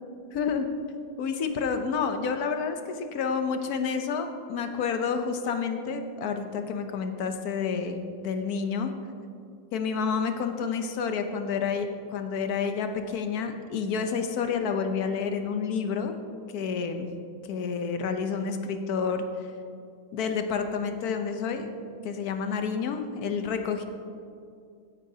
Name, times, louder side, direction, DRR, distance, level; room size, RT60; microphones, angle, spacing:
voice 1, 0.3-0.6 1.2-8.9 9.7-16.1 16.5-17.1 17.5-19.5 20.1-21.7 22.0-23.8, left 5 dB, 60° left, 7 dB, 1.1 m, -29 dB
16.5 x 9.5 x 2.8 m, 2.4 s
omnidirectional pair, 2.1 m